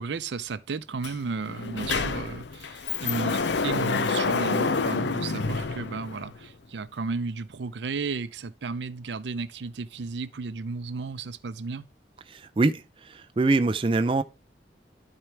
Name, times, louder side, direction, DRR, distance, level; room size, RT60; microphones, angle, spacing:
voice 1, 0.0-11.9, right 4 dB, 80° right, 0.5 m, -34 dB
Sliding door, 1.0-1.1 1.5-6.5, left 4 dB, 80° left, 0.6 m, -28 dB
voice 2, 12.3-14.2, right 3 dB, 30° right, 0.4 m, -24 dB
12.0 x 4.6 x 3.3 m
head